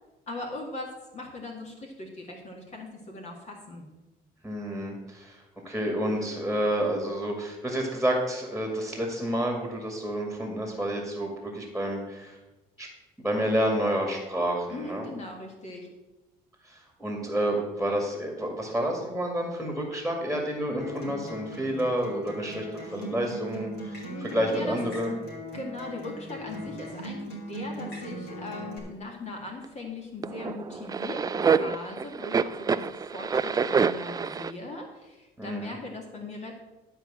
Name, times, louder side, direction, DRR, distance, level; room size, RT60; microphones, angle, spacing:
voice 1, 0.3-3.9 14.7-15.9 24.1-24.8 25.5-36.5, left 2 dB, 40° left, 1 dB, 1.9 m, -39 dB
voice 2, 4.4-12.4 12.8-12.9 13.2-15.1 16.6-25.2 26.6-26.7 35.4-35.8, equal, ahead, 1 dB, 2.1 m, -29 dB
Acoustic guitar, 20.8-28.8, right 1 dB, 70° left, 3.4 m, -39 dB
sound 1, 29.6-29.7 30.2-34.5, right 5 dB, 20° right, 0.4 m, -26 dB
12.5 x 4.7 x 7.4 m, 1.1 s
cardioid pair, 110°, 17 cm